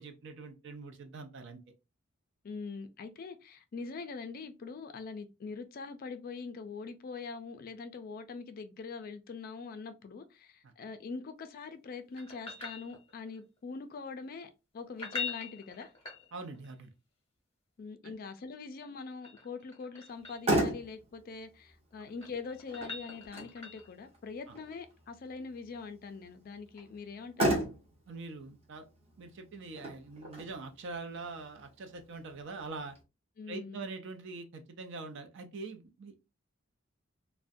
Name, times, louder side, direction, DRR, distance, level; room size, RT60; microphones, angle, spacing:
voice 1, 0.0-1.6 10.6-10.7 16.3-16.9 18.0-18.1 24.5-24.6 28.1-28.8 29.2-33.0 33.5-36.2, right 3 dB, 65° right, 0.5 m, -43 dB
voice 2, 2.4-15.9 17.8-27.6 33.4-33.8, left 4 dB, 45° left, 0.3 m, -43 dB
sound 1, 12.2-13.4 14.9-16.7 18.8-20.5 21.9-24.0 26.7-26.8, left 5 dB, 30° left, 0.8 m, -43 dB
Motor vehicle (road), 20.1-33.0, right 1 dB, 30° right, 0.7 m, -37 dB
2.4 x 2.1 x 2.5 m
head